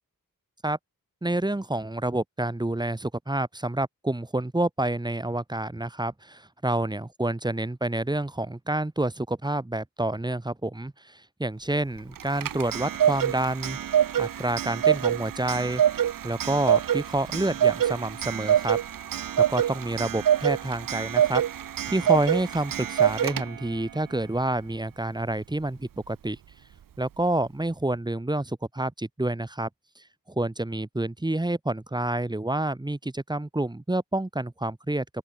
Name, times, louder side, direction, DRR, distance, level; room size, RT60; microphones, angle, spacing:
voice 1, 1.2-13.8 14.2-15.8 16.2-18.8 19.5-21.4 21.9-26.4 27.0-29.7 30.0-35.0, right 1 dB, 10° right, 0.9 m, -28 dB
Clock, 12.2-23.8, right 10 dB, 75° right, 0.5 m, -25 dB
open air
wide cardioid pair, 75°, 34 cm